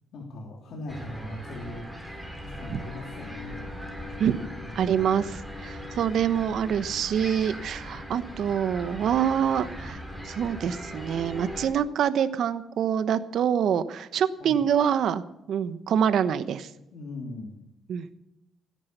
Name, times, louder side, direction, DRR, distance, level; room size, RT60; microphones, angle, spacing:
voice 1, 0.1-2.1 2.4-3.7 4.6-5.1 14.4-14.6 16.9-17.5, left 2 dB, 70° left, 0 dB, 3.2 m, -40 dB
sound 1, 0.9-11.7, equal, ahead, 4.7 m, -39 dB
voice 2, 4.7-10.0 10.2-15.2 15.5-16.7 17.9-18.1, right 8 dB, 70° right, 13 dB, 1.1 m, -25 dB
17.0 x 10.5 x 6.8 m, 0.90 s
cardioid pair, 90°, 0 cm